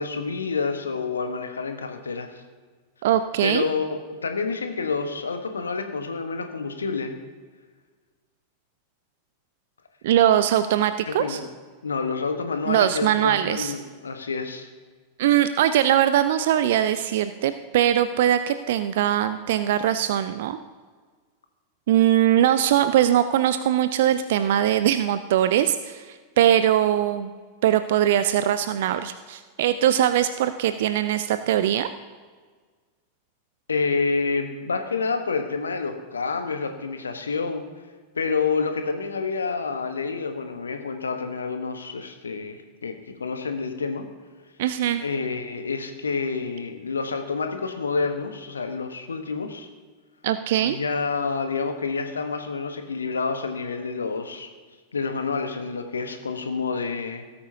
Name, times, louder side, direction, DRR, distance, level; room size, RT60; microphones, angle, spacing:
voice 1, 0.0-2.4 3.4-7.1 11.1-11.5 11.8-14.7 33.7-37.7 38.1-44.0 45.0-49.7 50.6-54.5 54.9-57.3, left 4 dB, 75° left, 6 dB, 1.1 m, -28 dB
voice 2, 3.0-3.6 10.0-11.4 12.7-13.7 15.2-20.6 21.9-27.3 27.6-31.9 44.6-45.0 50.2-50.8, right 11 dB, 55° right, 11 dB, 0.4 m, -21 dB
18.0 x 8.7 x 2.8 m, 1.5 s
figure-of-eight pair, 90°, 0 cm